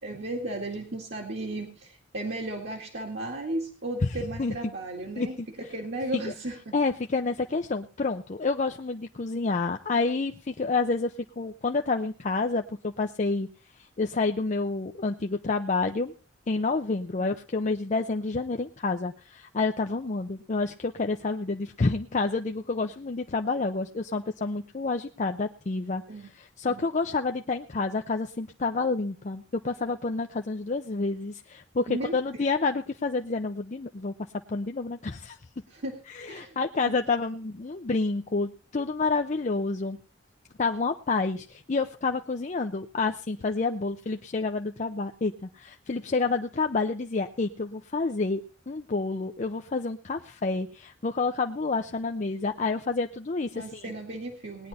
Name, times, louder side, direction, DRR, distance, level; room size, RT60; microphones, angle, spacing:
voice 1, 0.0-6.7 17.2-17.3 26.1-26.3 26.7-26.8 31.9-32.4 35.7-36.0 36.3-36.6 36.8-36.9 53.5-54.7, right 1 dB, 60° right, 0 dB, 2.2 m, -35 dB
voice 2, 5.2-5.5 6.7-13.5 14.0-16.1 16.5-26.0 26.3-34.1 34.5-35.4 36.1-40.0 40.6-53.9, left 3 dB, 40° left, 5 dB, 0.6 m, -29 dB
19.0 x 9.9 x 4.2 m, 0.39 s
head